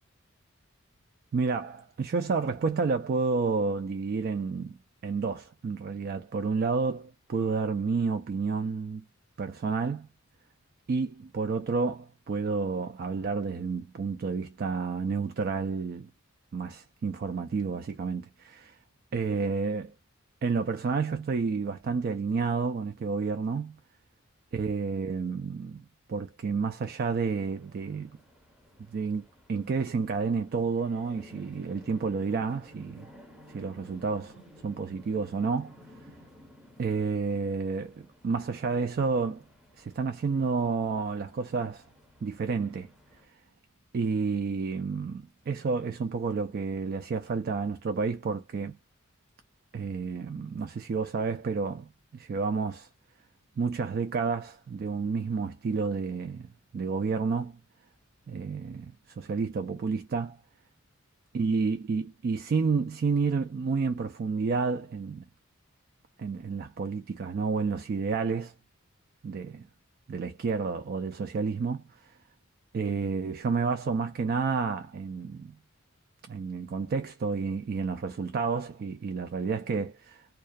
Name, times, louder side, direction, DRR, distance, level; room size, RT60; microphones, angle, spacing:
voice 1, 1.3-9.0 9.4-10.1 10.9-16.1 16.5-18.8 19.1-19.9 20.4-23.8 24.5-28.1 28.9-33.1 33.5-35.7 36.8-39.4 39.8-41.9 42.2-42.9 43.3-43.4 43.9-48.8 49.7-52.9 53.6-57.6 58.3-60.4 61.3-65.2 66.2-68.5 69.2-69.7 70.1-72.1 72.7-75.5 76.3-80.3, right 5 dB, 45° right, 0.3 m, -30 dB
sound 1, 27.4-43.3, equal, 5° right, 0.6 m, -55 dB
2.2 x 2.2 x 2.5 m
head